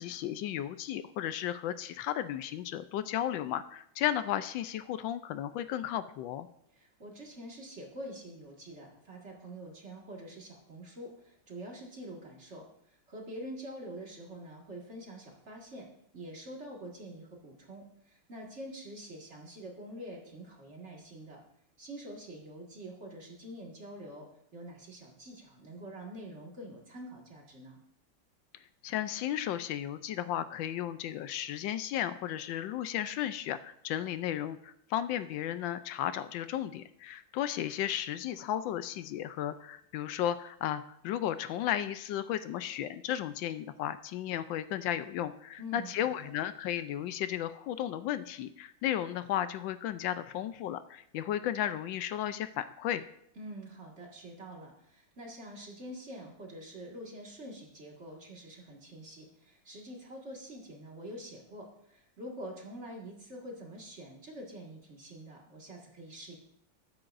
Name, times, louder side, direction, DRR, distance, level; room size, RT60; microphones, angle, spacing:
voice 1, 0.0-6.5 28.8-53.0, left 11 dB, 80° left, 12 dB, 1.3 m, -34 dB
voice 2, 6.7-15.9 16.1-21.4 21.8-27.8 45.6-46.3 53.4-66.4, right 1 dB, 35° right, -1 dB, 2.1 m, -46 dB
19.0 x 8.7 x 2.6 m, 0.72 s
omnidirectional pair, 2.0 m